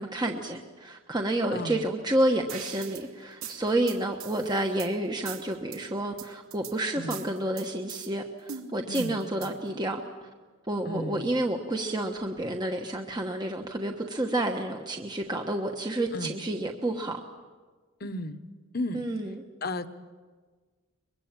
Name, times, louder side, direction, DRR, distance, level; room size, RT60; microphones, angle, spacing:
voice 1, 0.0-10.3 10.7-17.2 18.9-19.4, right 1 dB, 20° right, 3 dB, 1.2 m, -30 dB
voice 2, 1.5-1.9 7.0-7.2 8.9-9.2 10.8-11.3 16.1-16.4 18.0-18.4 18.7-19.1 19.6-19.9, left 1 dB, 45° left, 11 dB, 1.2 m, -34 dB
sound 1, 2.5-3.0 3.4-4.9 5.3-5.8 6.2-6.7 7.1-8.1 8.5-9.7, right 8 dB, 85° right, 2.6 m, -41 dB
24.0 x 22.5 x 8.9 m, 1.4 s
head